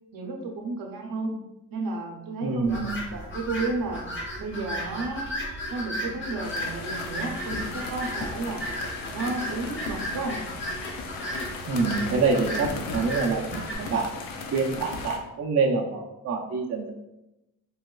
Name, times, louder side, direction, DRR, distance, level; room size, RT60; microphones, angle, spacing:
voice 1, 0.1-1.4 1.7-4.0 4.4-5.3 5.7-8.6 9.1-10.4 12.7-13.0, right 3 dB, 80° right, 1 dB, 0.7 m, -32 dB
voice 2, 2.4-3.0 11.7-14.1 14.5-16.9, right 4 dB, 50° right, 0 dB, 0.5 m, -26 dB
sound 1, 2.6-13.8, equal, 35° left, 0.9 m, -35 dB
sound 2, 6.4-15.2, left 4 dB, 85° left, 0.5 m, -37 dB
3.4 x 2.9 x 2.3 m, 0.93 s
cardioid pair, 95°, 33 cm